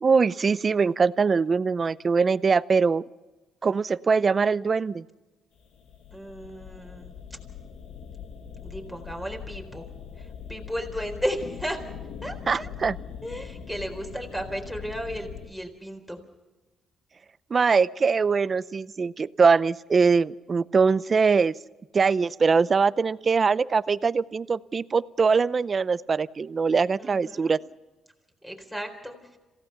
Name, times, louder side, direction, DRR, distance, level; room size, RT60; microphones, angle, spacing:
voice 1, 0.0-3.0 3.6-5.0 12.5-13.0 17.5-21.5 21.9-27.6, right 5 dB, 35° right, 18 dB, 0.6 m, -22 dB
sound 1, 5.6-15.5, left 7 dB, 75° left, 1.7 m, -41 dB
voice 2, 6.1-7.1 8.6-9.8 10.2-11.8 12.2-12.7 13.2-16.2 27.0-27.5 28.4-29.4, equal, 5° left, 4 dB, 4.2 m, -34 dB
27.0 x 16.5 x 5.8 m, 1.1 s
cardioid pair, 90°, 0 cm